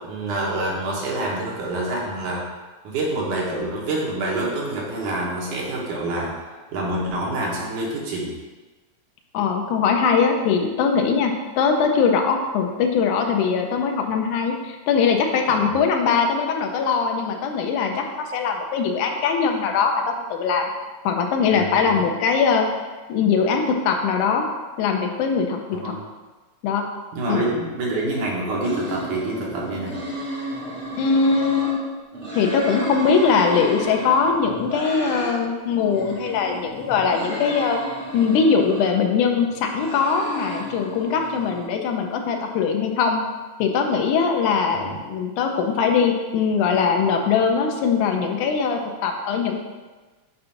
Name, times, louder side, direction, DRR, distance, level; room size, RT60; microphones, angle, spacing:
voice 1, 0.0-2.4 2.8-6.4 6.7-8.3 15.6-15.7 21.5-22.0 25.7-26.0 27.1-30.0 44.8-45.0, right 2 dB, 80° right, -4 dB, 2.7 m, -27 dB
voice 2, 9.3-18.0 18.3-20.0 20.3-20.7 21.1-22.7 23.1-24.4 24.8-25.9 26.6-26.8 27.3-27.5 31.0-31.8 32.3-37.8 38.1-43.2 43.6-49.6, left 5 dB, 90° left, 3 dB, 2.2 m, -21 dB
sound 1, 28.6-31.7 32.1-35.3 35.7-39.0 39.4-41.6, right 1 dB, 35° right, 1.1 m, -33 dB
7.1 x 2.6 x 5.6 m, 1.3 s
omnidirectional pair, 3.4 m